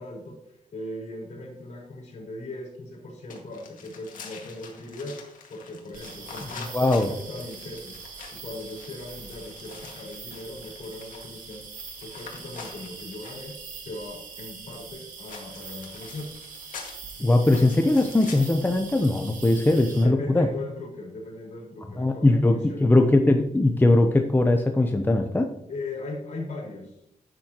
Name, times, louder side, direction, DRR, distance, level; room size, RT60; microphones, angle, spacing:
voice 1, 0.0-5.2 5.5-8.0 8.3-11.6 12.0-13.5 13.8-16.3 19.6-23.2 25.7-27.0, left 2 dB, 60° left, -2 dB, 4.2 m, -39 dB
sound 1, 3.3-13.5 15.3-18.7, left 5 dB, 80° left, 1.9 m, -46 dB
sound 2, 5.9-20.0, right 5 dB, 85° right, 2.0 m, -43 dB
voice 2, 6.7-7.1 17.2-20.5 22.0-25.5, left 2 dB, 15° left, 5 dB, 0.7 m, -20 dB
11.0 x 8.8 x 3.0 m, 0.78 s
cardioid pair, 95°, 14 cm